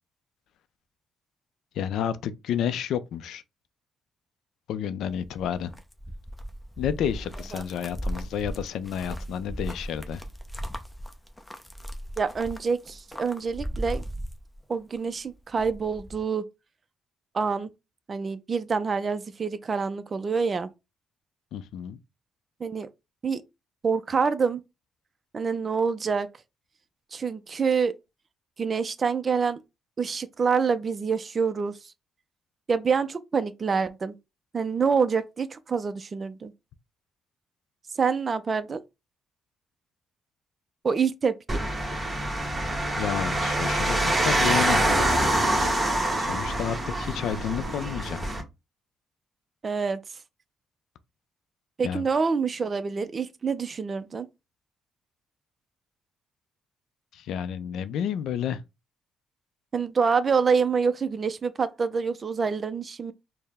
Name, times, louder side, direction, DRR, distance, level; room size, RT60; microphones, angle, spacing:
voice 1, 1.7-3.4 4.7-5.7 6.8-10.2 21.5-22.0 43.0-44.8 46.2-48.2 51.8-52.1 57.1-58.6, left 9 dB, 80° left, 0.4 m, -30 dB
sound 1, 5.1-15.0 15.3-16.2, equal, 10° left, 0.6 m, -37 dB
voice 2, 12.2-14.0 14.7-16.4 17.3-17.7 18.1-20.7 22.6-22.9 23.2-23.4 23.8-24.6 25.3-26.3 27.1-27.9 28.6-29.6 30.0-31.8 32.7-34.1 34.5-36.5 38.0-38.8 40.8-41.7 49.6-50.0 51.8-54.3 59.7-63.1, right 5 dB, 35° right, 0.4 m, -26 dB
sound 2, 41.5-48.4, right 1 dB, 20° right, 1.1 m, -25 dB
4.4 x 2.1 x 3.4 m
cardioid pair, 90°, 0 cm